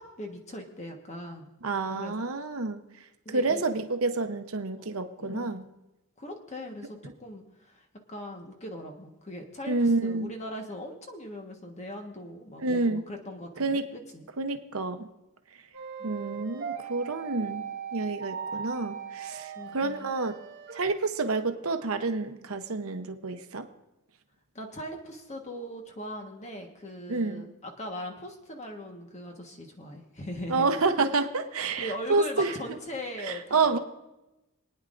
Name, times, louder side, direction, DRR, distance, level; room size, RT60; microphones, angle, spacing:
voice 1, 0.0-1.5 1.9-2.3 3.2-3.7 4.8-4.9 5.2-5.6 6.2-14.3 16.0-16.1 19.5-20.1 24.5-30.7 31.8-33.8, equal, 30° left, 3 dB, 1.4 m, -40 dB
voice 2, 1.6-2.8 3.3-5.7 9.7-10.3 12.6-13.0 13.6-13.8 14.4-15.1 16.0-17.6 17.9-20.3 20.7-23.7 27.1-27.4 30.5-32.5 33.2-33.8, right 3 dB, 70° right, 7 dB, 0.9 m, -28 dB
sound 1, 15.7-20.9, right 7 dB, 50° right, 1.4 m, -39 dB
28.0 x 9.4 x 2.6 m, 0.98 s
head